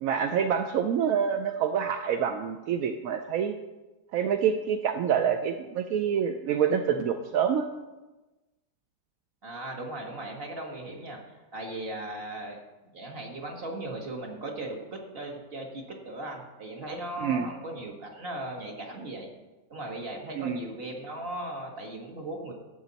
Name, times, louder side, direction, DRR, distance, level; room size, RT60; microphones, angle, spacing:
voice 1, 0.0-3.6 4.1-7.7 17.2-17.5 20.4-20.6, right 8 dB, 70° right, 6 dB, 0.8 m, -27 dB
voice 2, 9.4-12.6 12.9-19.3 19.7-22.5, right 1 dB, 35° right, 1 dB, 1.6 m, -38 dB
12.5 x 7.9 x 4.0 m, 1.1 s
omnidirectional pair, 1.9 m